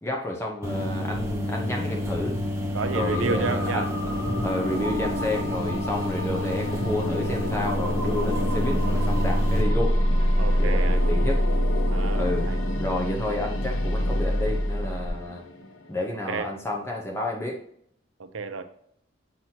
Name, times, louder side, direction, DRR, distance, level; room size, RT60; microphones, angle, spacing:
voice 1, 0.0-2.4 2.9-3.9 4.4-10.0 10.6-11.4 12.1-12.5 12.8-15.4 15.9-17.6, left 1 dB, 15° left, 0 dB, 0.9 m, -30 dB
sound 1, 0.6-9.6, left 1 dB, 15° right, 1.0 m, -30 dB
sound 2, 1.5-16.4, left 2 dB, 85° left, 0.8 m, -35 dB
voice 2, 2.7-3.9 5.9-6.1 8.3-8.4 10.4-11.0 11.9-12.6 16.3-16.5 18.2-18.6, right 4 dB, 90° right, 9 dB, 0.7 m, -31 dB
sound 3, 2.8-15.1, equal, 30° right, 2.3 m, -26 dB
7.5 x 6.0 x 2.9 m, 0.70 s
head